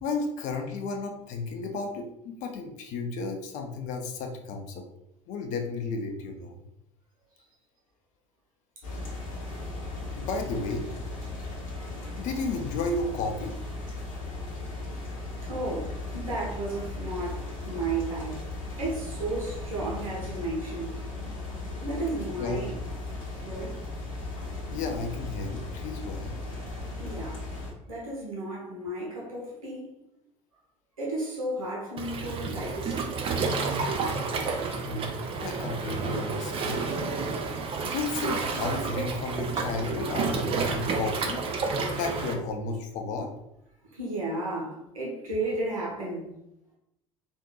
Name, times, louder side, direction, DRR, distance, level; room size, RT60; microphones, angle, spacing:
voice 1, 0.0-4.8 5.3-6.6 10.2-10.9 12.2-13.6 22.3-22.6 24.7-26.3 34.8-35.1 35.4-36.8 37.8-43.3, left 3 dB, 45° left, 4 dB, 0.6 m, -33 dB
sound 1, 8.8-27.7, left 2 dB, 70° left, 0.9 m, -37 dB
voice 2, 15.4-18.4 18.8-21.0 21.8-22.7 23.4-23.8 27.0-27.4 27.9-30.0 31.0-33.0 43.9-46.4, right 2 dB, 80° right, -6 dB, 1.1 m, -33 dB
Waves surf, 32.0-42.3, right 4 dB, 30° right, 0.5 m, -30 dB
3.7 x 2.5 x 2.3 m, 0.82 s
figure-of-eight pair, 65°, 18 cm